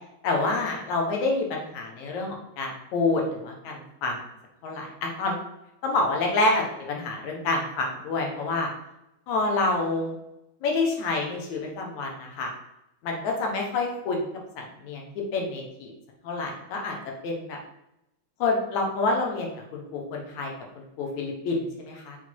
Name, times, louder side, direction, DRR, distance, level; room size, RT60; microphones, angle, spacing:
voice 1, 0.2-4.2 4.6-5.4 5.8-8.7 9.3-10.1 10.6-12.5 13.0-14.3 14.6-15.9 16.2-17.0 17.2-17.6 18.4-22.2, left 3 dB, 75° left, 1 dB, 2.6 m, -28 dB
6.4 x 4.4 x 4.6 m, 0.87 s
omnidirectional pair, 3.3 m